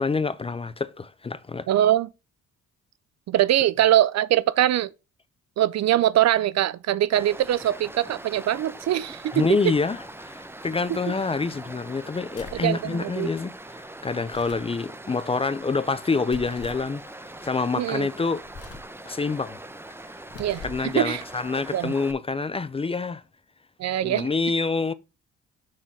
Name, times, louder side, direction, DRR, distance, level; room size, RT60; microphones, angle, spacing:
voice 1, 0.0-1.7 9.3-17.0 17.4-18.4 19.1-19.6 20.6-23.2 24.0-24.9, left 4 dB, 20° left, 0.5 m, -27 dB
voice 2, 1.7-2.1 3.3-4.9 5.6-9.4 10.9-11.0 12.5-13.3 17.8-18.1 20.4-21.2 21.7-21.9 23.8-24.3, right 12 dB, 60° right, 0.5 m, -22 dB
Stream, 7.1-22.1, right 1 dB, 10° right, 0.8 m, -42 dB
sound 1, 12.3-12.7 14.2-14.7 16.3-16.9 18.4-19.0 20.2-20.9, left 3 dB, 50° left, 1.6 m, -42 dB
6.5 x 4.0 x 5.8 m
cardioid pair, 90°, 30 cm